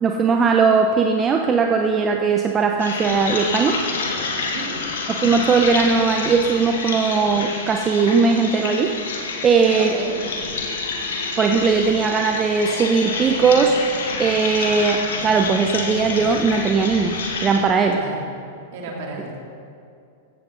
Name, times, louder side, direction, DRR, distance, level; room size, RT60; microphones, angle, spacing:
voice 1, 0.0-3.8 5.1-8.9 9.4-9.9 11.4-13.8 14.2-18.0, right 5 dB, 25° right, 3 dB, 0.9 m, -19 dB
sound 1, 2.8-17.6, left 4 dB, 70° left, 2.3 m, -28 dB
voice 2, 4.5-4.8 9.7-10.2 17.9-18.3 18.7-19.4, right 3 dB, 55° right, -1 dB, 3.5 m, -33 dB
16.0 x 15.5 x 4.1 m, 2.5 s
hypercardioid pair, 100°, 0 cm